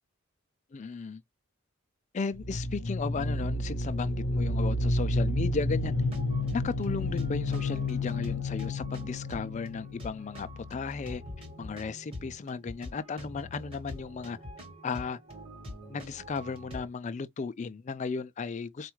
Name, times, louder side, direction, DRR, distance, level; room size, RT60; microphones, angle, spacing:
voice 1, 0.7-1.2 2.1-6.0 6.5-11.2 11.6-14.4 14.8-15.2 15.9-18.9, left 4 dB, 30° left, 0.3 m, -35 dB
sound 1, 2.3-11.0, left 2 dB, 50° left, 0.7 m, -31 dB
sound 2, 5.8-16.9, left 1 dB, 25° right, 1.2 m, -44 dB
4.2 x 2.3 x 3.0 m
head